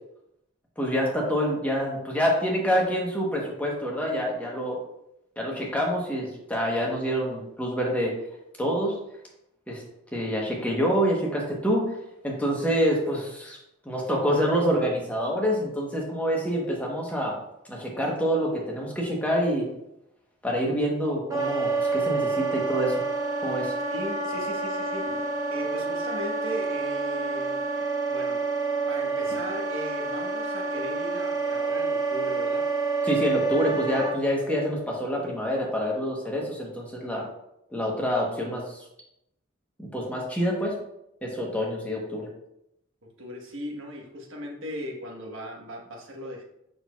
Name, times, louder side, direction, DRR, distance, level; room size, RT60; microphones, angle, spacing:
voice 1, 0.8-4.8 5.4-8.1 8.6-9.0 9.7-9.8 10.1-12.0 12.2-13.6 13.8-17.4 17.7-19.7 20.4-23.0 23.4-23.7 33.0-37.3 37.7-38.9 39.8-40.8 41.2-42.3, equal, 5° left, -2 dB, 1.0 m, -27 dB
Wind instrument woodwind instrument, 21.3-34.1, right 3 dB, 15° right, 0.9 m, -28 dB
voice 2, 23.9-28.4 28.9-32.6 43.2-46.4, equal, 65° right, 0 dB, 1.3 m, -37 dB
6.6 x 6.0 x 2.3 m, 0.82 s
head